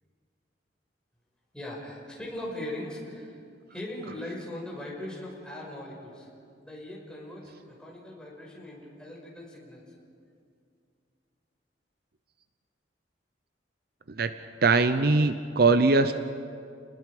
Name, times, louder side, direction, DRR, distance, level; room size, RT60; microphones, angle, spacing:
voice 1, 1.5-3.4 3.7-6.3 6.6-9.8, left 1 dB, 5° left, -4 dB, 5.5 m, -39 dB
voice 2, 14.6-16.2, right 3 dB, 60° right, 10 dB, 0.7 m, -21 dB
29.5 x 20.5 x 4.9 m, 2.4 s
head